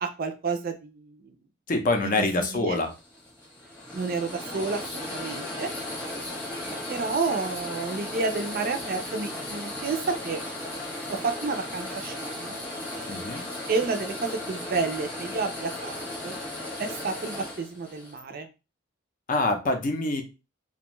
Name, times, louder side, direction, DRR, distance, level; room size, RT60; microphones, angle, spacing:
voice 1, 0.0-1.3 2.0-2.8 3.9-5.7 6.5-10.4 11.1-12.6 13.7-15.9 16.2-16.4 16.8-18.5, right 4 dB, 45° right, 7 dB, 0.4 m, -30 dB
voice 2, 1.7-2.9 13.1-13.4 19.3-20.2, left 2 dB, 40° left, 5 dB, 0.5 m, -25 dB
sound 1, 2.7-18.2, left 1 dB, 10° left, 0.9 m, -36 dB
2.5 x 2.2 x 2.9 m, 0.29 s
head